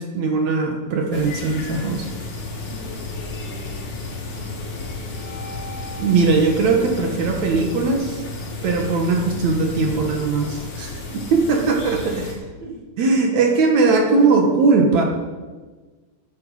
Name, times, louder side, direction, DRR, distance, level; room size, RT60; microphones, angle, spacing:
voice 1, 0.0-2.1 6.0-8.2 8.6-12.4 13.0-15.0, right 4 dB, 65° right, 2 dB, 2.8 m, -19 dB
sound 1, 1.1-12.3, left 2 dB, 75° left, 4.5 m, -34 dB
sound 2, 1.8-12.7, left 4 dB, 50° left, 2.5 m, -37 dB
voice 2, 2.6-3.9 4.4-4.7 11.4-12.2 12.6-12.8, equal, 35° right, -6 dB, 4.9 m, -42 dB
14.5 x 11.0 x 5.7 m, 1.3 s
omnidirectional pair, 3.6 m